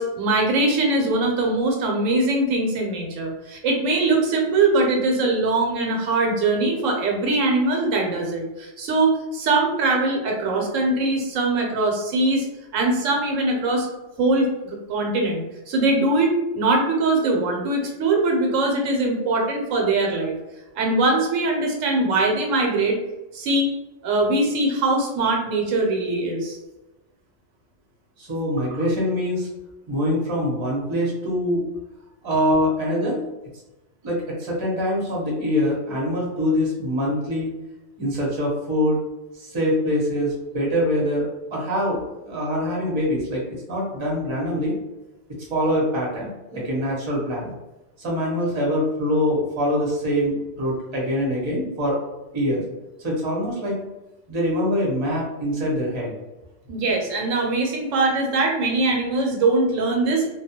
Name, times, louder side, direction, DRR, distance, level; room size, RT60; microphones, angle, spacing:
voice 1, 0.0-12.5 12.7-13.9 14.2-20.3 20.8-23.0 23.3-23.7 24.0-26.6 56.7-60.3, right 2 dB, 80° right, 1 dB, 1.0 m, -22 dB
voice 2, 28.2-29.5 29.9-31.6 32.2-33.2 34.0-37.5 38.0-39.0 39.3-42.0 42.3-43.4 43.7-44.7 45.5-47.5 48.0-52.0 52.3-52.6 53.0-53.8 54.3-56.1, equal, 30° right, -4 dB, 0.7 m, -24 dB
2.3 x 2.1 x 2.7 m, 1.0 s
omnidirectional pair, 1.3 m